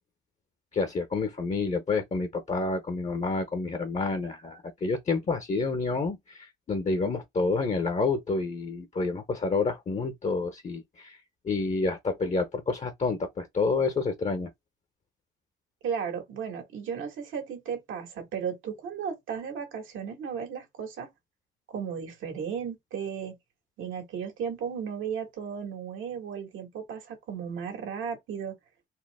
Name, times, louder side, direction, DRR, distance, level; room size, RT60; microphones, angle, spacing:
voice 1, 0.7-11.2 11.4-14.5, left 3 dB, 35° left, 0.8 m, -29 dB
voice 2, 15.8-21.1 21.7-23.4 23.8-28.5, right 7 dB, 85° right, 1.7 m, -35 dB
4.3 x 2.0 x 3.5 m
cardioid pair, 90°, 20 cm